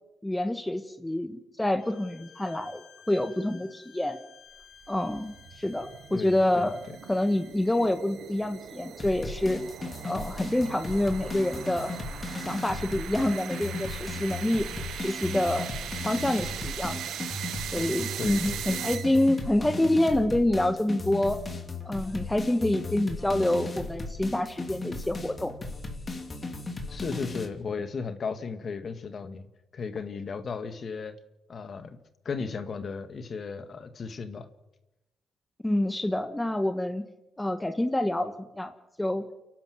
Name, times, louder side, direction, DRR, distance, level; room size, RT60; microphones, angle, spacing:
voice 1, 0.2-4.2 4.9-6.8 7.1-9.6 10.0-11.9 12.4-14.7 15.0-15.7 16.0-17.2 17.7-21.4 21.8-25.5 35.6-37.0 37.4-38.7 39.0-39.2, left 1 dB, 10° left, 9 dB, 1.5 m, -27 dB
Bowed string instrument, 1.8-7.5, left 7 dB, 80° left, 4.1 m, -54 dB
sound 1, 4.6-19.4, right 10 dB, 75° right, 1.2 m, -40 dB
voice 2, 6.1-6.7 18.2-18.9 26.9-29.5 29.7-31.1 31.5-32.0 32.3-34.5, left 5 dB, 45° left, 9 dB, 2.0 m, -35 dB
sound 2, 9.0-27.5, left 3 dB, 30° left, 3.3 m, -36 dB
29.5 x 11.5 x 8.0 m, 0.95 s
cardioid pair, 90°, 0 cm